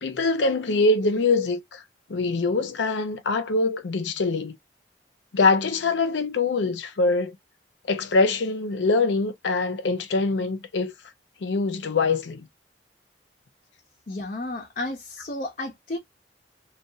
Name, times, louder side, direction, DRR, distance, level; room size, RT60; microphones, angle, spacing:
voice 1, 0.0-1.8 2.1-4.6 5.3-7.4 7.9-10.9 11.4-12.5, left 3 dB, 90° left, 0.6 m, -23 dB
voice 2, 14.1-16.0, left 2 dB, 45° left, 0.5 m, -32 dB
2.7 x 2.3 x 2.2 m
head